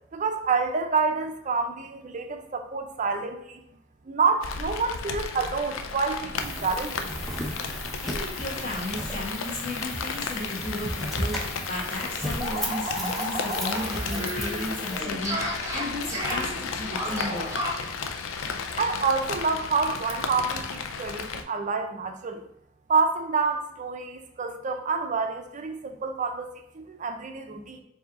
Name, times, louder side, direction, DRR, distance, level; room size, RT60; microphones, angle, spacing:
voice 1, 0.1-3.6 4.1-7.1 18.8-22.5 22.9-27.8, right 4 dB, 40° right, 6 dB, 0.5 m, -28 dB
Rain, 4.4-21.4, left 5 dB, 90° left, 0.4 m, -34 dB
sound 1, 6.4-15.0, equal, ahead, 0.6 m, -36 dB
voice 2, 8.0-17.5, left 1 dB, 40° left, -5 dB, 1.7 m, -34 dB
sound 2, 11.0-11.1 11.3-11.4 11.8-17.9, equal, 15° right, 1.0 m, -33 dB
4.7 x 2.8 x 4.0 m, 0.80 s
head